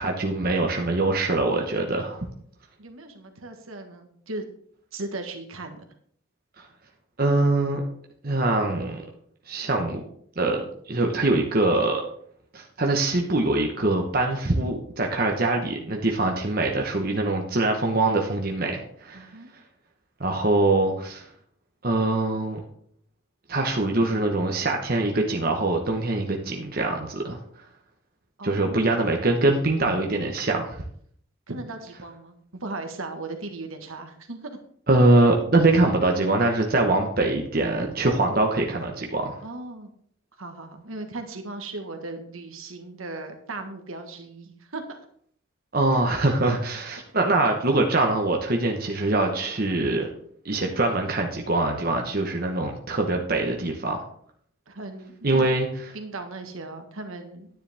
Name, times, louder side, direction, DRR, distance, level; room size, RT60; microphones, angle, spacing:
voice 1, 0.0-2.3 6.6-6.7 7.2-7.8 8.2-9.0 9.5-10.0 10.4-12.0 12.5-19.3 20.2-21.2 21.8-22.6 23.5-27.4 28.4-30.8 34.9-39.4 45.7-50.1 50.4-54.0 55.2-55.9, right 2 dB, 45° right, 2 dB, 1.1 m, -23 dB
voice 2, 2.8-4.4 4.9-5.8 19.1-19.5 28.4-29.0 31.5-34.5 39.4-39.9 40.4-45.0 54.7-55.5 55.9-57.5, right 2 dB, 75° right, 6 dB, 1.5 m, -37 dB
10.0 x 9.7 x 3.5 m, 0.63 s
head